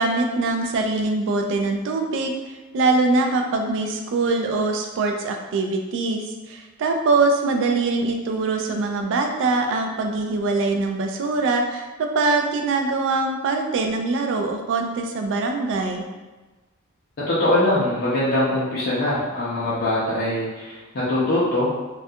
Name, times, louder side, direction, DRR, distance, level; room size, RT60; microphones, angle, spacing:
voice 1, 0.0-2.3 2.7-6.2 6.5-16.0, right 3 dB, 55° right, 3 dB, 0.3 m, -23 dB
voice 2, 17.3-21.7, left 1 dB, 45° left, -8 dB, 0.5 m, -22 dB
2.3 x 2.3 x 2.6 m, 1.2 s
head